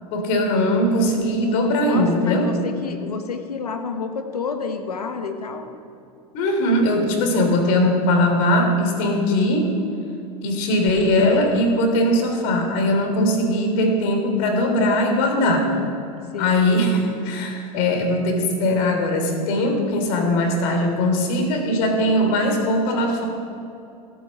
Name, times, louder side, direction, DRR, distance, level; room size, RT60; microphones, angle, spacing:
voice 1, 0.1-2.5 6.3-9.7 10.4-15.7 16.4-23.3, left 1 dB, 60° left, 4 dB, 3.3 m, -20 dB
voice 2, 1.8-5.7 15.4-15.9 16.3-16.6, left 5 dB, 90° left, 7 dB, 1.5 m, -29 dB
16.5 x 8.8 x 7.5 m, 2.7 s
hypercardioid pair, 90°, 19 cm